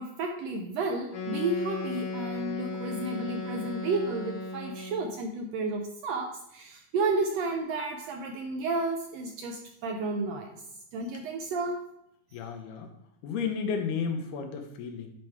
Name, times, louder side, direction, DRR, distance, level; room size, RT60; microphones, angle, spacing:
voice 1, 0.0-10.6 10.9-11.9, right 3 dB, 75° right, 3 dB, 1.5 m, -32 dB
Wind instrument woodwind instrument, 1.1-5.2, left 3 dB, 50° left, 1.2 m, -36 dB
voice 2, 12.3-12.9 13.2-15.1, left 6 dB, 90° left, 4 dB, 2.5 m, -32 dB
10.5 x 4.5 x 3.5 m, 0.77 s
omnidirectional pair, 3.5 m